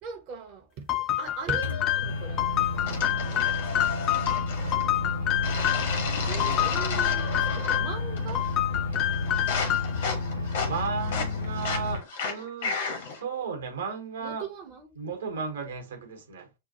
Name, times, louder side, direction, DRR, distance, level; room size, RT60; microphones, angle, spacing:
voice 1, 0.0-3.5 6.0-8.4 14.2-14.9, right 5 dB, 40° right, 0.7 m, -40 dB
sound 1, 0.9-6.0 6.4-8.0 8.3-10.1, left 13 dB, 35° left, 0.4 m, -28 dB
Microwave oven, 1.6-12.0, left 3 dB, 80° left, 1.0 m, -31 dB
sound 2, 2.9-4.9 5.4-7.9 8.2-8.6 8.9-13.2, left 5 dB, 60° left, 1.1 m, -34 dB
voice 2, 10.6-14.5 15.0-16.6, right 5 dB, 65° right, 1.0 m, -35 dB
6.8 x 2.3 x 2.8 m
figure-of-eight pair, 90°, 0 cm